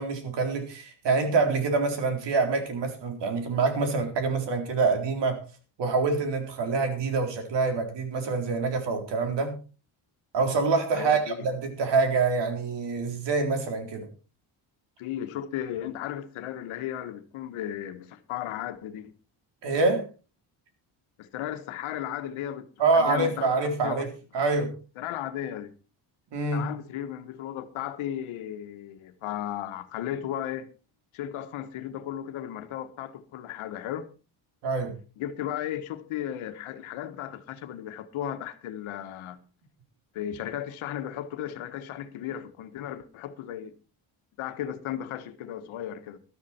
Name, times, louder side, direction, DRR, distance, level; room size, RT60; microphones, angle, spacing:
voice 1, 0.0-5.5 5.8-9.6 10.3-14.1 19.6-20.1 22.8-24.1 24.3-24.8 26.3-26.7 34.6-35.0, right 4 dB, 60° right, 3.9 m, -26 dB
voice 2, 10.9-11.5 15.0-19.1 21.2-22.7 22.9-23.5 23.8-24.1 24.4-24.5 25.0-25.7 26.5-30.7 31.1-34.1 35.2-39.4 40.1-43.7 44.4-46.2, left 11 dB, 85° left, 1.6 m, -35 dB
13.5 x 12.5 x 4.4 m
cardioid pair, 135°, 47 cm